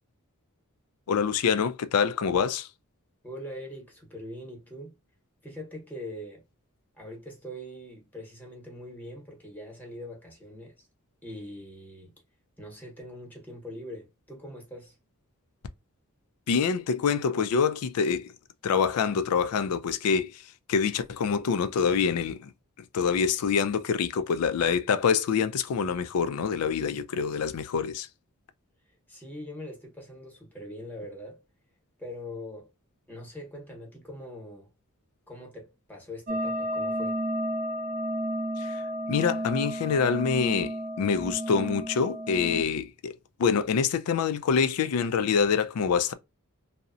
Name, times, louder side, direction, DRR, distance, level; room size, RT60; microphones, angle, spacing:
voice 1, 1.1-2.7 16.5-18.3 18.6-22.5 22.9-28.1 38.6-38.8 39.1-43.1 43.4-46.1, left 6 dB, 90° left, 0.4 m, -26 dB
voice 2, 3.2-5.0 5.4-6.4 7.0-10.9 11.2-12.1 12.6-15.0 29.1-31.4 32.0-32.7 33.1-34.7 35.3-37.2, left 1 dB, 10° left, 0.9 m, -42 dB
sound 1, 36.3-42.6, equal, 40° right, 0.5 m, -32 dB
2.7 x 2.0 x 2.4 m
head